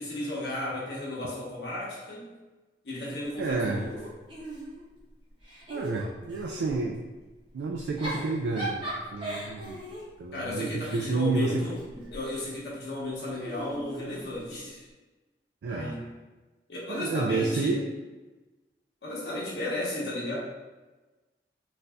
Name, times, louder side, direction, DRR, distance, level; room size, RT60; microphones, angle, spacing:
voice 1, 0.0-2.3 2.8-4.0 10.3-11.8 12.1-14.9 15.7-16.0 16.7-17.7 19.0-20.3, left 1 dB, 75° left, -6 dB, 1.1 m, -34 dB
Giggle / Chuckle chortle, 3.4-5.0 5.4-6.8 7.8-12.2 13.3-14.7, right 1 dB, 30° right, 0.9 m, -39 dB
voice 2, 3.4-3.8 5.7-7.0 7.5-8.8 9.1-9.8 10.2-11.6 15.6-16.0 16.9-17.9, right 3 dB, 85° right, 1 dB, 0.3 m, -29 dB
4.0 x 2.6 x 2.3 m, 1.2 s
head